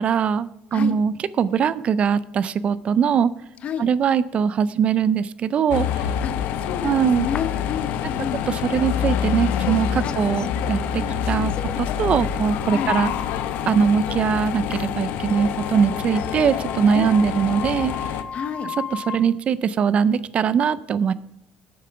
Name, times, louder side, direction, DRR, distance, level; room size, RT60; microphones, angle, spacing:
voice 1, 0.0-3.3 3.8-5.9 6.8-7.3 8.5-11.5 11.8-13.1 13.7-17.9 18.9-21.1, right 7 dB, 45° right, 18 dB, 0.4 m, -21 dB
sound 1, 5.7-18.2, left 9 dB, 75° left, 0.7 m, -26 dB
voice 2, 6.2-8.4 10.0-10.2 11.0-11.2 12.7-12.9 16.9-17.2 18.3-18.7, left 7 dB, 50° left, 10 dB, 0.9 m, -30 dB
sound 2, 6.3-6.4 7.2-8.5 8.8-8.9 9.4-10.5 10.7-11.1 11.5-11.9 12.3-12.4 12.7-12.8 13.1-13.3 14.2-14.3 14.5-19.2, left 6 dB, 30° left, 0.5 m, -37 dB
8.6 x 7.0 x 5.7 m, 0.84 s
cardioid pair, 125°, 3 cm